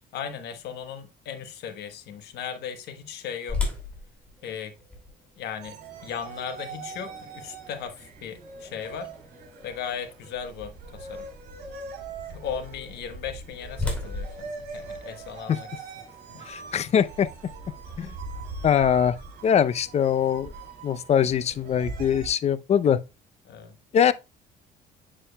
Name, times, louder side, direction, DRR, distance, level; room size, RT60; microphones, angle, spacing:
voice 1, 0.1-3.6 4.4-4.7 5.4-9.1 9.6-11.3 12.3-15.7 16.3-16.5 17.9-18.0 23.4-23.7, left 8 dB, 75° left, 1.2 m, -37 dB
sound 1, 3.5-9.4 10.0-10.1 10.7-10.9 13.0-15.6, left 3 dB, 5° left, 2.6 m, -36 dB
sound 2, 5.6-22.3, right 4 dB, 75° right, 2.6 m, -41 dB
voice 2, 16.5-17.3 18.0-18.1 18.6-19.2 19.4-20.5 20.8-23.0 23.9-24.1, left 8 dB, 40° left, 0.5 m, -22 dB
7.5 x 6.6 x 2.2 m
cardioid pair, 110°, 17 cm